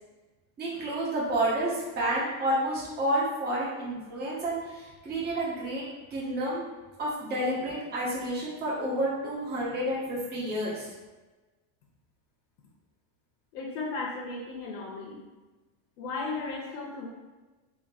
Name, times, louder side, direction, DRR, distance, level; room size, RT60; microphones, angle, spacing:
voice 1, 0.6-5.8 6.1-6.6 7.0-10.9, right 1 dB, 20° right, -6 dB, 0.9 m, -30 dB
voice 2, 13.5-15.2 16.0-17.1, left 3 dB, 90° left, -2 dB, 0.8 m, -35 dB
2.9 x 2.7 x 4.1 m, 1.2 s
cardioid pair, 165°, 46 cm